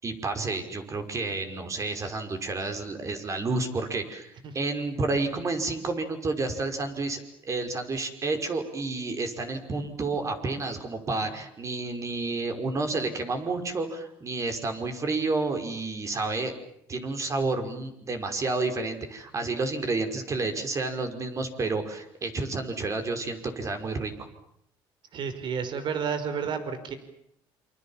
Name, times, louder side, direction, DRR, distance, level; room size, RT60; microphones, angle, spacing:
voice 1, 0.0-16.5 16.9-24.1, right 3 dB, 35° right, 6 dB, 5.6 m, -30 dB
voice 2, 25.1-26.9, right 6 dB, 55° right, 11 dB, 4.9 m, -31 dB
28.0 x 26.5 x 7.4 m, 0.74 s
cardioid pair, 115°, 9 cm